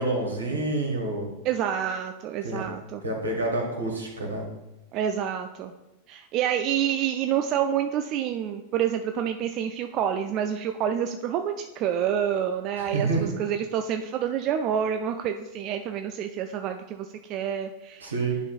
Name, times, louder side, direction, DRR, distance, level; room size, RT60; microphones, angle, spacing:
voice 1, 0.0-1.3 2.4-2.6 3.0-4.4 12.8-13.3 18.0-18.4, right 2 dB, 75° right, 0 dB, 1.6 m, -28 dB
voice 2, 1.4-3.0 4.9-5.7 6.1-18.1, right 9 dB, 40° right, 6 dB, 0.4 m, -28 dB
10.5 x 5.4 x 2.4 m, 0.99 s
figure-of-eight pair, 90°, 0 cm